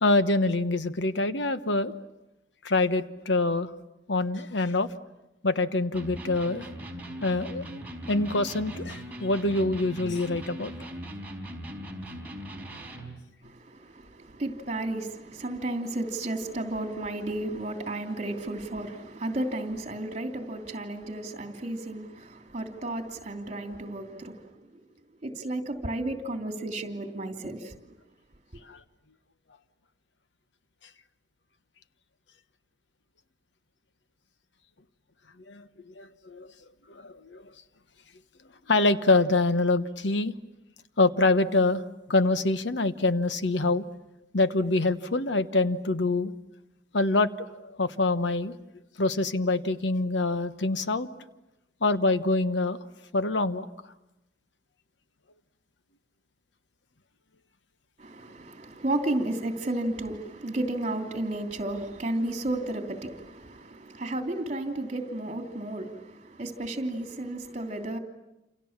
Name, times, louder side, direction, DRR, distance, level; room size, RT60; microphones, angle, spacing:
voice 1, 0.0-1.9 2.6-3.7 4.1-4.9 5.4-6.7 7.2-7.6 8.1-10.7 28.7-28.8 35.5-36.5 36.9-37.5 38.7-40.3 41.0-41.8 42.1-43.8 44.3-46.3 46.9-48.6 49.0-51.1 51.8-52.9 53.1-53.6, left 2 dB, 80° left, 1.2 m, -25 dB
Electric guitar, 5.9-13.2, equal, 10° right, 4.5 m, -39 dB
voice 2, 13.4-24.8 25.2-27.9 58.0-68.0, right 1 dB, 40° right, 3.0 m, -33 dB
28.5 x 28.0 x 7.4 m
head